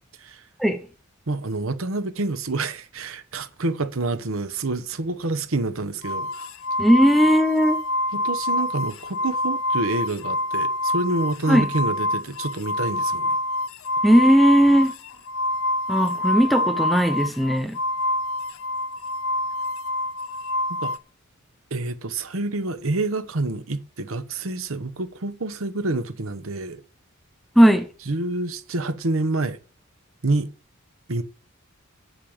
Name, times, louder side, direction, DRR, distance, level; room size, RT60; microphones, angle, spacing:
voice 1, 1.3-6.3 8.1-13.4 20.8-20.9 21.7-26.8 28.1-29.6 30.2-30.5 31.1-31.2, right 2 dB, 70° right, 1.0 m, -27 dB
sound 1, 6.0-21.0, left 1 dB, 70° left, 0.8 m, -26 dB
voice 2, 6.8-7.8 11.5-11.7 14.0-14.9 15.9-17.8 27.6-27.9, equal, ahead, 0.8 m, -17 dB
8.4 x 7.2 x 7.2 m
head